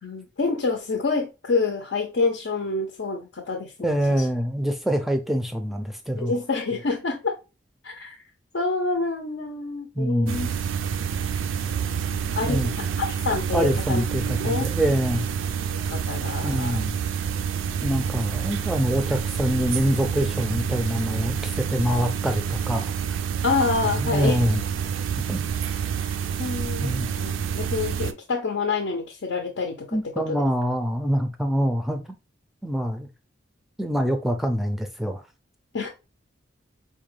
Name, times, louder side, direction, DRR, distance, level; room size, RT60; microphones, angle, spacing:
voice 1, 0.0-4.0 6.2-7.4 7.8-8.2 8.5-10.5 11.9-14.0 14.4-14.6 15.7-16.9 23.4-24.4 26.0-30.4 35.7-35.9, left 4 dB, 75° left, 0.6 m, -27 dB
voice 2, 3.8-6.3 10.0-10.4 12.4-12.8 13.5-15.3 16.4-17.0 17.8-22.9 23.8-24.6 25.3-25.4 26.8-27.1 29.9-32.0 32.6-33.1 33.8-35.2, equal, ahead, 0.4 m, -25 dB
sound 1, 10.3-28.1, right 7 dB, 90° right, 0.4 m, -28 dB
4.4 x 2.2 x 3.1 m
head